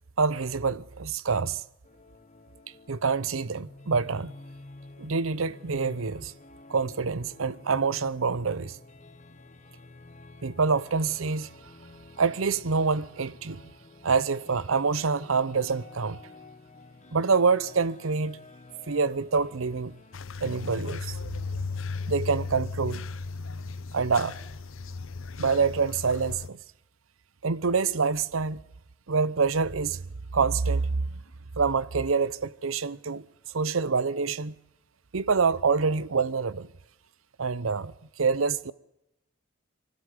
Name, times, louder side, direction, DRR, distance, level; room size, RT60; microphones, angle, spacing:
voice 1, 0.2-1.6 2.9-4.3 5.0-6.3 6.7-8.8 10.4-11.5 12.2-13.7 14.0-16.2 17.1-18.4 18.9-19.9 20.4-21.2 22.1-23.0 23.9-24.4 25.4-26.6 27.4-28.6 29.1-30.0 30.3-31.2 31.6-33.2 33.5-34.5 35.1-36.7 37.4-38.7, right 5 dB, 85° right, 0.8 m, -26 dB
sound 1, 1.8-20.2, left 2 dB, 35° left, 1.3 m, -50 dB
sound 2, 20.1-26.5, left 4 dB, 80° left, 0.8 m, -36 dB
24.5 x 12.5 x 9.4 m
head